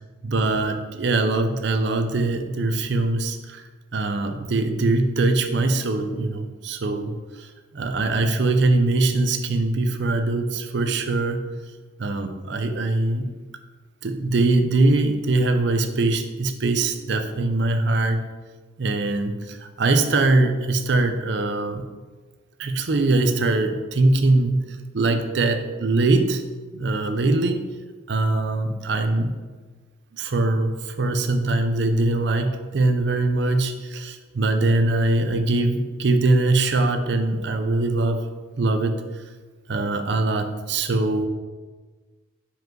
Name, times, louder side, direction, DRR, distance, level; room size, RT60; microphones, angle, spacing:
voice 1, 0.2-3.6 3.9-7.2 7.7-11.4 12.0-13.3 14.0-18.2 18.8-21.8 22.6-24.6 24.9-26.4 26.7-27.7 28.1-29.4 30.1-38.2 38.6-39.0 39.7-41.3, right 2 dB, 60° right, 7 dB, 0.5 m, -22 dB
5.0 x 5.0 x 3.8 m, 1.3 s
head